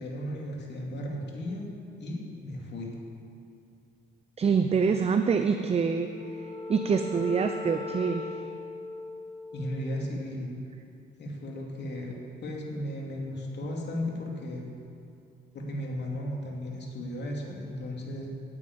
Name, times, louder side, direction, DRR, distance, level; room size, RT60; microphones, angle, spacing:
voice 1, 0.0-1.7 2.0-3.0 9.5-10.5 11.2-12.1 12.4-14.7 15.5-18.3, left 1 dB, 60° left, -1 dB, 2.8 m, -35 dB
voice 2, 4.4-6.1 6.7-8.2, right 5 dB, 30° right, 7 dB, 0.6 m, -25 dB
Wind instrument woodwind instrument, 5.7-10.2, left 3 dB, 25° left, 3.0 m, -39 dB
9.6 x 9.1 x 8.6 m, 2.6 s
cardioid pair, 90°, 20 cm